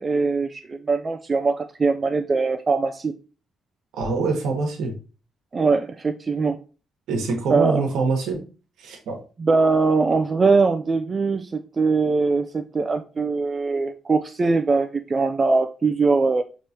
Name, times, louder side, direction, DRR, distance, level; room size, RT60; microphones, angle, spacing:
voice 1, 0.0-3.1 5.5-6.6 7.5-7.8 9.4-16.4, right 4 dB, 30° right, 0.3 m, -21 dB
voice 2, 3.9-4.9 7.1-8.4 8.8-9.2, right 4 dB, 80° right, 1.1 m, -24 dB
4.7 x 3.0 x 2.8 m
cardioid pair, 90°, 0 cm